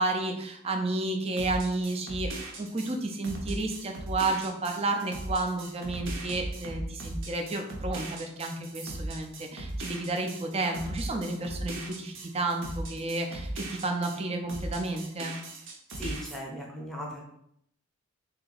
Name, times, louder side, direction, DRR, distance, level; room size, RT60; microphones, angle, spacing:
voice 1, 0.0-15.4, right 2 dB, 25° right, 4 dB, 0.5 m, -31 dB
sound 1, 1.4-14.2 14.5-16.4, right 1 dB, 60° right, 0.8 m, -38 dB
voice 2, 15.9-17.3, equal, ahead, -2 dB, 0.7 m, -38 dB
3.3 x 2.8 x 3.9 m, 0.74 s
head